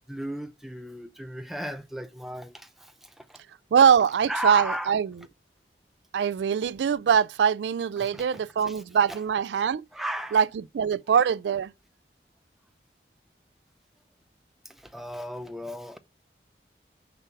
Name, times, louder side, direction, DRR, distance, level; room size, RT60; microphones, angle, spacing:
voice 1, 0.1-3.4 4.3-4.9 8.0-8.8 9.1-9.2 9.9-10.4 14.6-16.0, equal, ahead, 0.5 m, -35 dB
voice 2, 3.7-5.1 6.1-9.8 10.3-10.5 10.7-11.7, right 7 dB, 85° right, 0.3 m, -22 dB
6.8 x 4.6 x 5.8 m
head